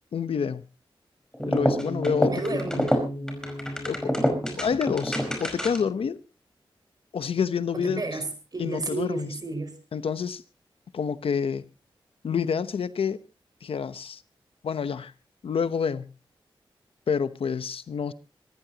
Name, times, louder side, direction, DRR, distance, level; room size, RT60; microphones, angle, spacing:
voice 1, 0.1-0.6 1.5-2.3 2.7-2.8 3.9-4.1 4.6-6.2 7.1-8.0 8.6-9.3 9.9-10.4 10.9-11.7 12.2-13.2 13.6-14.2 14.6-15.1 15.4-16.1 17.1-18.1, left 6 dB, 80° left, 1.0 m, -28 dB
sound 1, 1.3-6.0, equal, 5° left, 5.0 m, -27 dB
voice 2, 2.2-3.0 4.0-4.7 7.7-9.8, right 2 dB, 45° right, 5.4 m, -32 dB
26.0 x 14.5 x 2.9 m
wide cardioid pair, 90°, 9 cm